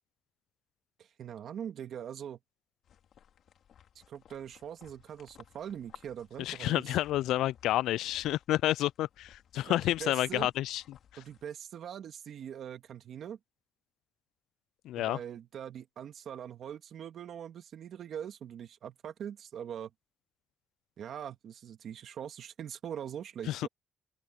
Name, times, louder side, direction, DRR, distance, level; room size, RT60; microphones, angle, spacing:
voice 1, 1.0-2.4 4.1-6.9 9.5-10.5 11.2-13.4 15.0-19.9 21.0-23.7, right 9 dB, 65° right, 2.2 m, -42 dB
sound 1, 2.8-11.5, left 9 dB, 65° left, 3.4 m, -59 dB
voice 2, 6.4-11.0 14.8-15.2 23.5-23.7, left 14 dB, 85° left, 0.3 m, -30 dB
open air
cardioid pair, 90°, 0 cm